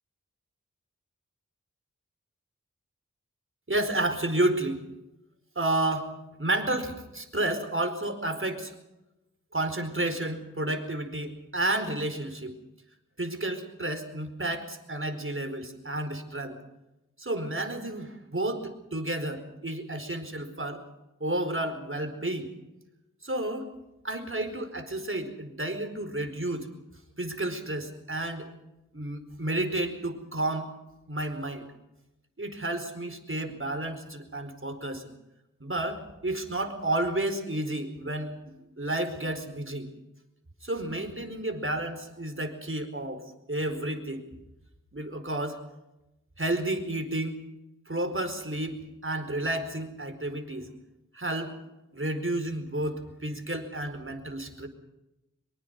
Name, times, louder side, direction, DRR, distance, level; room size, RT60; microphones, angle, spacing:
voice 1, 3.7-4.8 5.5-6.1 6.4-8.7 9.5-12.6 13.2-16.6 17.2-20.8 21.2-22.5 23.2-23.7 24.0-26.7 27.2-28.5 28.9-30.7 31.1-31.7 32.4-35.0 35.6-39.9 40.6-43.2 43.5-44.2 44.9-45.6 46.4-47.3 47.9-50.7 51.1-51.5 51.9-54.7, right 1 dB, 40° right, 7 dB, 4.6 m, -31 dB
25.0 x 23.5 x 5.5 m, 0.94 s
wide cardioid pair, 50°, 32 cm